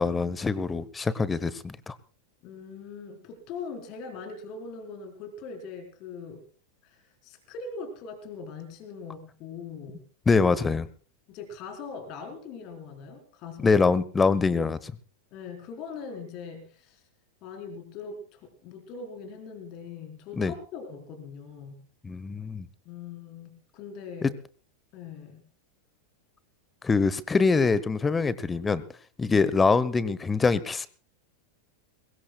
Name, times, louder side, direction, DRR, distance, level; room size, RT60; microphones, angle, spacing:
voice 1, 0.0-1.9 10.3-10.9 13.6-14.9 20.4-20.5 22.0-22.7 24.2-24.3 26.8-28.8 29.2-30.9, left 4 dB, 15° left, 18 dB, 1.0 m, -24 dB
voice 2, 2.4-6.5 6.8-10.0 11.3-13.8 15.3-17.0 17.4-21.8 22.8-24.3 24.9-25.4 29.3-29.5, left 5 dB, 40° left, 5 dB, 4.2 m, -41 dB
23.5 x 21.5 x 2.3 m, 0.40 s
figure-of-eight pair, 90°, 0 cm